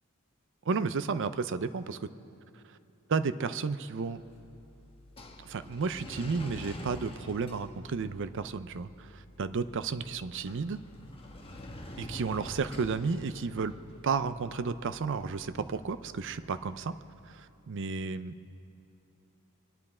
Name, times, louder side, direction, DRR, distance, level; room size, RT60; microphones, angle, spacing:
voice 1, 0.7-2.1 3.1-4.2 5.4-10.8 12.0-13.7 14.0-16.9 17.3-18.3, right 5 dB, 60° right, 12 dB, 0.5 m, -32 dB
sound 1, 4.0-17.1, left 1 dB, 25° left, 1.2 m, -48 dB
26.5 x 11.0 x 4.3 m, 2.7 s
head